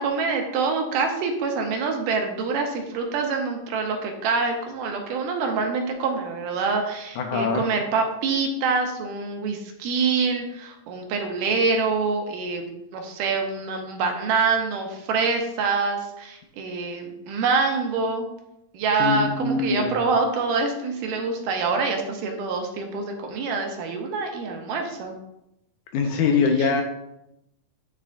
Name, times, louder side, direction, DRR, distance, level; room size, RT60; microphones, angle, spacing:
voice 1, 0.0-18.3 18.7-25.2 26.6-26.7, right 4 dB, 80° right, 3 dB, 2.4 m, -25 dB
voice 2, 7.2-7.6 19.0-20.0 25.9-26.8, left 5 dB, 80° left, 4 dB, 1.9 m, -23 dB
9.3 x 3.3 x 3.8 m, 0.85 s
omnidirectional pair, 3.8 m